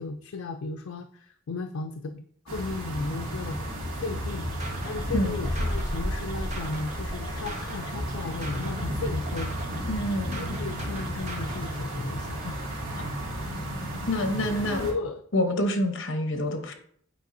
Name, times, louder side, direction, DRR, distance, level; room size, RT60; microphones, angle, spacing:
voice 1, 0.0-3.6 3.9-4.5 4.8-9.6 10.3-12.8 14.5-15.2, left 3 dB, 80° left, 6 dB, 0.4 m, -35 dB
sound 1, 2.5-14.9, equal, 85° right, 2.3 m, -33 dB
sound 2, 4.1-11.7, right 1 dB, 35° right, 1.1 m, -39 dB
voice 2, 9.9-10.4 14.1-14.9 15.3-16.7, left 1 dB, 60° left, 6 dB, 1.0 m, -27 dB
8.0 x 4.7 x 2.6 m, 0.62 s
head